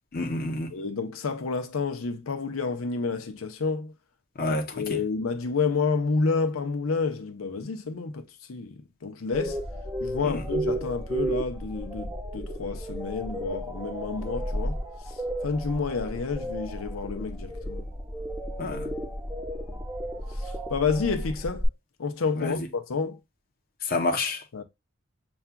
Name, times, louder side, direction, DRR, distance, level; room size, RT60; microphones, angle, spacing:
voice 1, 0.1-0.7 4.4-5.0 10.2-10.4 18.6-18.9 22.4-22.6 23.9-24.4, left 2 dB, 45° left, 0.7 m, -28 dB
voice 2, 0.7-3.9 4.5-9.6 10.0-14.8 15.4-17.9 19.7-19.8 20.4-21.7 22.0-23.2 24.5-24.6, left 4 dB, 85° left, 0.6 m, -29 dB
sound 1, 9.3-21.7, right 1 dB, 10° right, 0.7 m, -33 dB
6.8 x 2.4 x 2.2 m
head